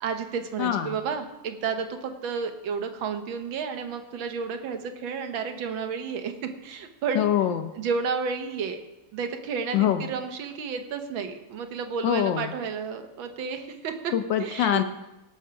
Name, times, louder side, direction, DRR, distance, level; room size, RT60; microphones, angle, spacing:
voice 1, 0.0-7.3 7.7-8.8 9.1-14.1 14.4-14.8, right 5 dB, 90° right, 6 dB, 1.8 m, -31 dB
voice 2, 0.6-0.9 7.1-7.7 9.7-10.1 12.0-12.5 14.1-14.8, left 10 dB, 75° left, 8 dB, 1.3 m, -24 dB
17.5 x 6.3 x 5.8 m, 0.97 s
omnidirectional pair, 2.1 m